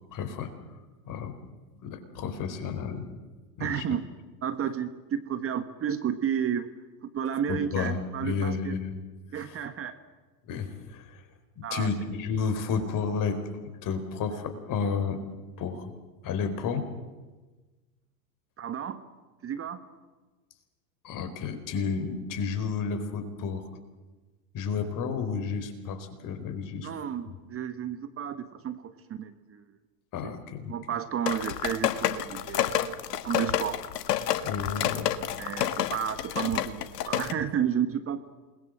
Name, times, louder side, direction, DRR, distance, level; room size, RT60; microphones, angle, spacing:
voice 1, 0.1-0.5 1.1-1.3 1.8-3.1 3.6-3.8 7.5-9.0 9.3-9.7 10.4-11.2 11.6-15.2 15.6-15.9 16.2-16.9 21.0-23.6 24.5-26.9 30.1-30.8 34.4-35.1, left 5 dB, 40° left, 8 dB, 4.3 m, -31 dB
voice 2, 3.6-4.1 4.4-6.7 7.1-8.7 9.3-9.9 11.6-11.9 18.6-19.0 19.4-19.8 26.8-29.6 30.2-30.3 30.7-32.9 33.2-33.8 35.4-38.3, right 8 dB, 25° right, 11 dB, 1.5 m, -32 dB
sound 1, 31.3-37.3, left 11 dB, 70° left, 1.7 m, -29 dB
28.0 x 21.0 x 7.8 m, 1.3 s
hypercardioid pair, 95°, 49 cm